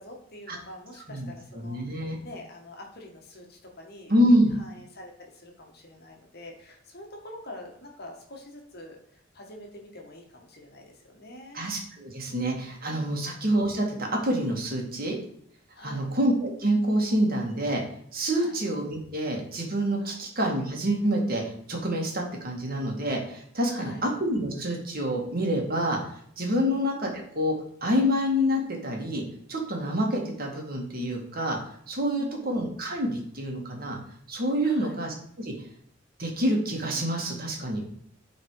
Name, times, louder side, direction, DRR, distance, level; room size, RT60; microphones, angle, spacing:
voice 1, 0.0-4.1 4.5-11.6 12.2-12.7 13.1-13.2 15.7-16.1 18.3-18.5 20.0-20.2 23.7-24.0 26.5-26.7 32.1-32.5 34.6-35.0, left 1 dB, 50° left, 1 dB, 1.7 m, -46 dB
voice 2, 1.1-2.2 4.1-4.5 11.5-15.2 15.8-17.8 18.1-26.0 26.4-27.5 27.8-29.2 29.5-31.6 31.9-34.0 34.3-35.5 36.2-37.8, equal, 45° right, 0 dB, 2.0 m, -27 dB
11.5 x 4.2 x 4.8 m, 0.66 s
head